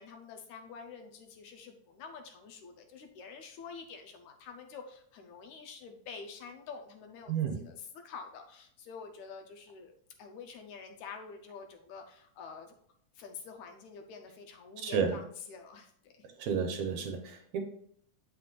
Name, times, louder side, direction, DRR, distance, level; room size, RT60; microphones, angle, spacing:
voice 1, 0.0-9.9 10.2-12.8 13.2-16.3, left 5 dB, 75° left, 4 dB, 1.9 m, -47 dB
voice 2, 7.3-7.6 14.8-15.2 16.4-17.6, right 6 dB, 70° right, 4 dB, 2.0 m, -32 dB
7.9 x 5.8 x 2.4 m, 0.65 s
omnidirectional pair, 3.6 m